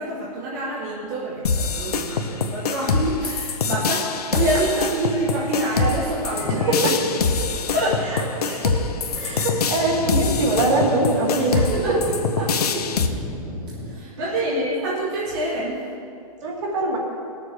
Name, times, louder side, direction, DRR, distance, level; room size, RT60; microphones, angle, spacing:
voice 1, 0.0-6.9 7.4-8.0 8.5-8.6 11.7-12.0 12.4-13.1 13.5-16.0, right 1 dB, 30° right, -5 dB, 1.0 m, -27 dB
sound 1, 1.4-13.1, left 5 dB, 80° left, 0.8 m, -24 dB
Thunder, 6.4-14.0, equal, 5° right, 0.6 m, -34 dB
voice 2, 6.4-7.0 8.0-8.8 9.1-11.7 14.4-14.5 16.4-17.0, right 2 dB, 50° right, -2 dB, 2.2 m, -23 dB
19.0 x 6.9 x 3.2 m, 2.5 s
hypercardioid pair, 170°, 19 cm